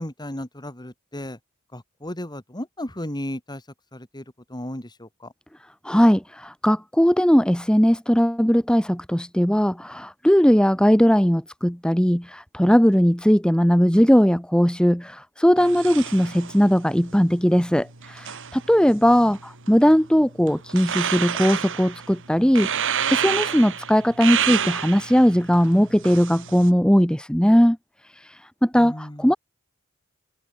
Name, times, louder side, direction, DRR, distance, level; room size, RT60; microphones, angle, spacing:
voice 1, 0.0-1.4 1.7-3.6 3.9-5.3 18.9-19.3 28.7-29.3, left 1 dB, 20° left, 3.2 m, -35 dB
voice 2, 5.8-27.8 28.1-29.4, equal, 5° left, 1.4 m, -19 dB
sound 1, 15.6-26.7, right 8 dB, 60° right, 3.7 m, -30 dB
head